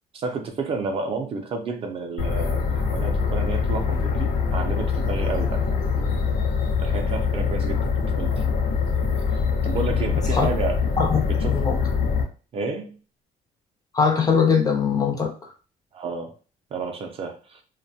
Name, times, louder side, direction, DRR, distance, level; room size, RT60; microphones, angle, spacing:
voice 1, 0.1-6.3 6.8-8.4 9.3-10.8 11.3-11.6 12.5-12.9 15.9-16.4 16.7-17.6, right 4 dB, 40° right, 5 dB, 0.4 m, -31 dB
sound 1, 2.2-12.2, left 5 dB, 70° left, 0.6 m, -24 dB
voice 2, 11.0-11.8 13.9-15.3, left 6 dB, 25° left, 3 dB, 0.4 m, -21 dB
2.4 x 2.1 x 2.7 m, 0.36 s
cardioid pair, 160°, 15 cm